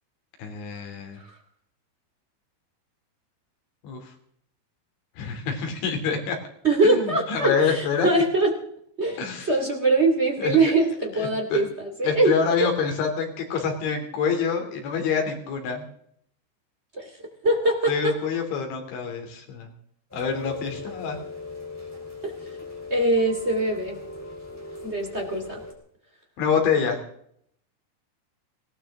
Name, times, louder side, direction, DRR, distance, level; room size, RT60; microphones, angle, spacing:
voice 1, 0.4-1.2 3.8-4.1 5.2-6.4 6.8-8.1 9.2-9.5 10.4-10.6 11.1-11.6 12.0-15.9 17.9-19.7 20.1-21.2 26.4-27.0, left 6 dB, 75° left, 3 dB, 5.5 m, -26 dB
voice 2, 6.6-8.5 9.0-9.2 9.5-12.3 12.6-12.7 16.9-17.9 22.5-22.6 22.9-24.0 24.8-25.6, right 2 dB, 25° right, 1 dB, 1.5 m, -22 dB
Rain, 20.1-25.7, left 3 dB, 5° left, 2.7 m, -39 dB
20.5 x 18.0 x 3.7 m, 0.67 s
omnidirectional pair, 5.4 m